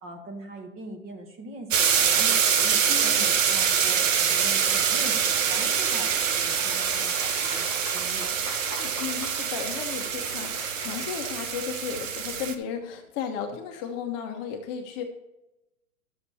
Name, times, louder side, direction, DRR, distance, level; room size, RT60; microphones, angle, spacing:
voice 1, 0.0-2.8 3.0-8.3, right 2 dB, 30° right, 3 dB, 2.0 m, -41 dB
sound 1, 1.7-12.5, right 7 dB, 60° right, 1.2 m, -25 dB
voice 2, 2.9-3.2 8.7-15.1, left 7 dB, 30° left, 4 dB, 1.0 m, -34 dB
Applause / Crowd, 4.8-12.1, equal, 80° right, 3.6 m, -42 dB
12.5 x 6.9 x 4.2 m, 1.0 s
hypercardioid pair, 125°, 45 cm